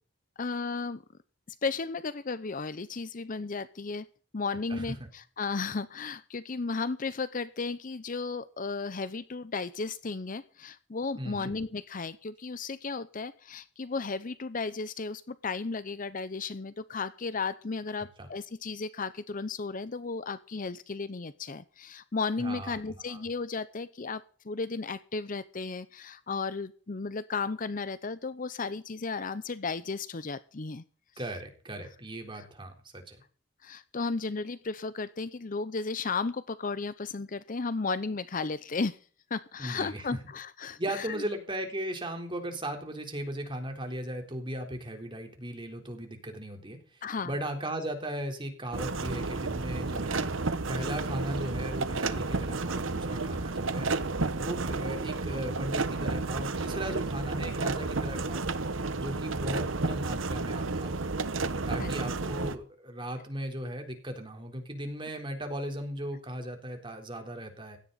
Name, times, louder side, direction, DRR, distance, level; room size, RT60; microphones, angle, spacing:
voice 1, 0.4-1.0 1.6-4.1 4.3-30.8 32.3-32.5 33.6-39.0 39.3-41.2 47.0-47.3 61.8-61.9, left 4 dB, 45° left, 15 dB, 0.7 m, -34 dB
voice 2, 4.7-5.1 11.2-11.5 18.2-18.3 22.4-22.8 23.1-23.2 31.2-33.2 39.6-40.0 40.8-46.8 47.2-53.9 54.3-58.5 59.0-61.0 61.7-67.8, right 1 dB, 25° right, 4 dB, 3.8 m, -37 dB
sound 1, 48.7-62.6, right 3 dB, 85° right, 1.1 m, -31 dB
17.0 x 13.0 x 4.1 m, 0.42 s
head